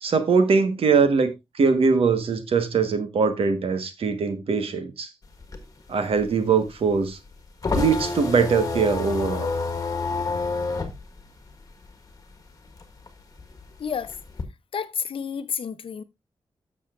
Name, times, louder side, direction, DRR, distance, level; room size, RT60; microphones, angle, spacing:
voice 1, 0.0-5.1 5.9-7.2 7.7-9.5, right 5 dB, 80° right, 1.4 m, -22 dB
sound 1, 5.2-12.3 12.7-14.4, left 4 dB, 35° left, 1.5 m, -29 dB
voice 2, 13.8-14.1 14.7-16.0, left 7 dB, 70° left, 0.7 m, -30 dB
12.5 x 7.0 x 2.5 m
wide cardioid pair, 175°, 10 cm